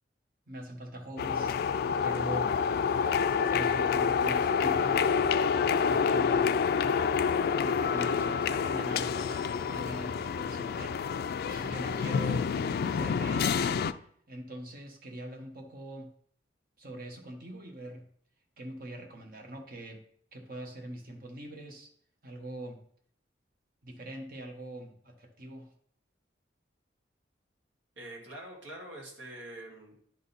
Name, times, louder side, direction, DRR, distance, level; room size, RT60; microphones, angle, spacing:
voice 1, 0.5-1.6 2.0-2.6 3.4-5.1 5.8-6.5 7.6-12.5 12.9-13.8 14.3-16.1 16.8-18.1 18.6-20.0 20.3-21.9 22.2-22.8 23.8-25.7, right 1 dB, 50° right, 3 dB, 1.2 m, -42 dB
sound 1, 1.2-13.9, left 6 dB, 55° left, 0.3 m, -28 dB
voice 2, 28.0-30.0, right 1 dB, 80° right, -1 dB, 2.0 m, -45 dB
10.5 x 3.8 x 4.1 m, 0.62 s
head